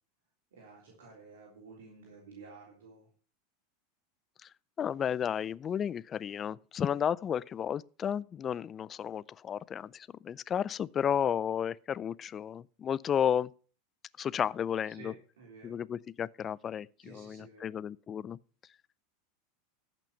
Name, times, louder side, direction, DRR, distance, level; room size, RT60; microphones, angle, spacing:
voice 1, 0.5-3.1 6.7-7.0 14.9-15.8 17.0-17.7, right 4 dB, 75° right, 3.5 m, -52 dB
voice 2, 4.8-13.5 14.2-15.1 15.6-18.4, left 8 dB, 30° left, 0.4 m, -33 dB
14.5 x 6.0 x 5.7 m
hypercardioid pair, 95°, 0 cm